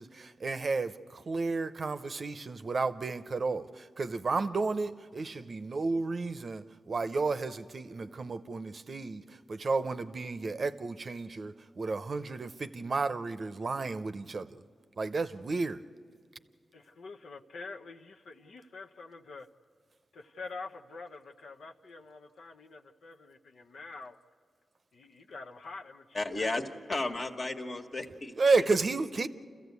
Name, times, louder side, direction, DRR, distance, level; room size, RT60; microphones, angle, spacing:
voice 1, 0.0-14.6 15.0-15.8 28.4-29.3, right 3 dB, 55° right, 0.7 m, -32 dB
voice 2, 16.7-19.5 20.1-24.2 24.9-26.5, left 3 dB, 85° left, 0.7 m, -46 dB
voice 3, 26.1-26.6 26.9-28.3, left 2 dB, 50° left, 1.5 m, -33 dB
27.5 x 14.5 x 8.2 m
cardioid pair, 60°, 0 cm